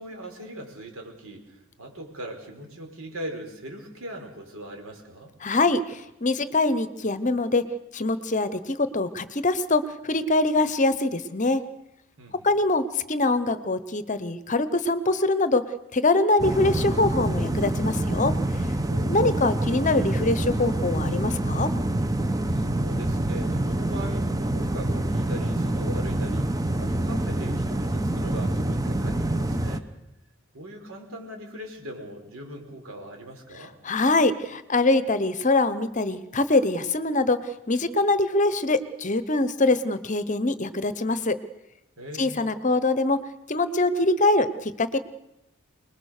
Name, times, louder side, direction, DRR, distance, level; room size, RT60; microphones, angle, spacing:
voice 1, 0.0-5.4 12.2-12.5 18.9-19.3 22.5-29.9 30.5-33.7 42.0-42.4, right 1 dB, 85° right, 3 dB, 4.9 m, -40 dB
voice 2, 5.4-7.6 7.9-11.6 12.4-15.6 15.9-18.3 19.1-21.7 33.8-41.4 42.2-43.2 43.5-45.0, left 2 dB, 35° left, 13 dB, 1.0 m, -23 dB
sound 1, 16.4-29.8, right 1 dB, 15° right, 0.9 m, -26 dB
25.5 x 20.5 x 6.6 m, 0.89 s
head